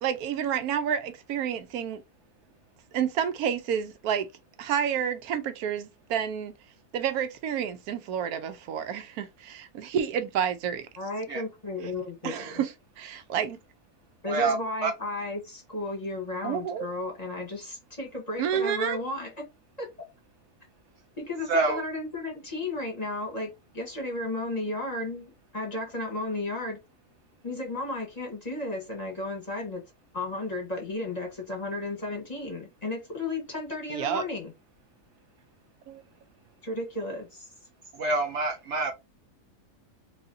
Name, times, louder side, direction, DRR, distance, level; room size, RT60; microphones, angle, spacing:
voice 1, 0.0-2.0 2.9-4.3 4.6-6.5 6.9-10.9 12.2-13.6 16.4-16.9 18.4-19.0 33.9-34.2 35.9-36.0, right 8 dB, 85° right, 1.1 m, -29 dB
voice 2, 11.0-12.6 14.2-19.3 19.8-19.9 21.2-26.8 27.4-29.8 30.1-34.5 36.6-37.5, left 2 dB, 30° left, 1.2 m, -34 dB
voice 3, 21.5-21.8 37.9-38.9, right 3 dB, 60° right, 0.9 m, -26 dB
4.1 x 2.7 x 2.6 m
omnidirectional pair, 1.5 m